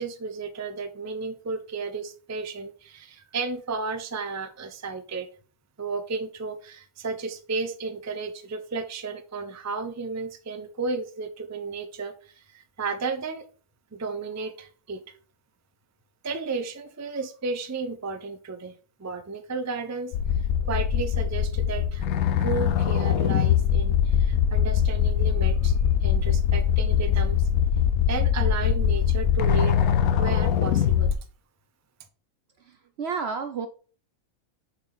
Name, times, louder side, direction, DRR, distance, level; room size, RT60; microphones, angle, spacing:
voice 1, 0.0-5.3 5.8-13.5 13.9-15.0 16.2-20.1 20.7-22.1 22.4-25.8 26.0-27.5 28.1-29.8 30.2-31.2, right 4 dB, 20° right, 8 dB, 0.4 m, -33 dB
sound 1, 20.1-31.2, left 8 dB, 70° left, 1.1 m, -22 dB
voice 2, 32.6-33.7, right 5 dB, 60° right, 8 dB, 0.7 m, -31 dB
6.8 x 4.2 x 4.3 m, 0.39 s
omnidirectional pair, 1.6 m